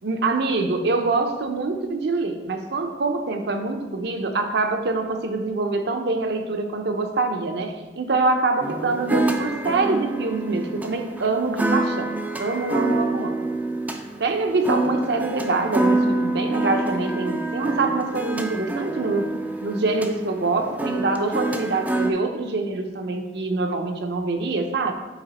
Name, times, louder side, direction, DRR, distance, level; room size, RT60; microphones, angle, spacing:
voice 1, 0.0-12.1 12.4-13.5 14.2-19.3 19.6-24.9, right 3 dB, 65° right, 5 dB, 0.6 m, -25 dB
sound 1, 8.6-22.1, right 2 dB, 10° right, 0.4 m, -26 dB
8.2 x 3.0 x 4.1 m, 1.1 s
head